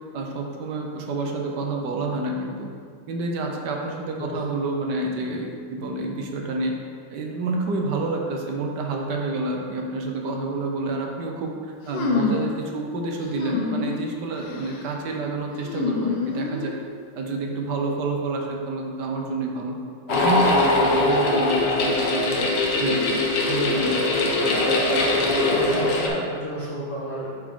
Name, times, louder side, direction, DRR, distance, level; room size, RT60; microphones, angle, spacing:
voice 1, 0.1-2.7 3.1-6.7 7.1-11.5 11.9-16.7 17.1-19.7 20.1-23.2 23.5-24.2, right 2 dB, 70° right, 1 dB, 1.4 m, -28 dB
sound 1, 11.9-12.5 13.4-14.0 14.4-14.8 15.6-16.8, left 4 dB, 85° left, 1.5 m, -27 dB
sound 2, 20.1-26.1, left 2 dB, 70° left, 1.6 m, -21 dB
voice 2, 25.2-27.4, right 1 dB, 30° left, -7 dB, 0.6 m, -32 dB
8.2 x 5.0 x 3.7 m, 2.1 s
omnidirectional pair, 2.0 m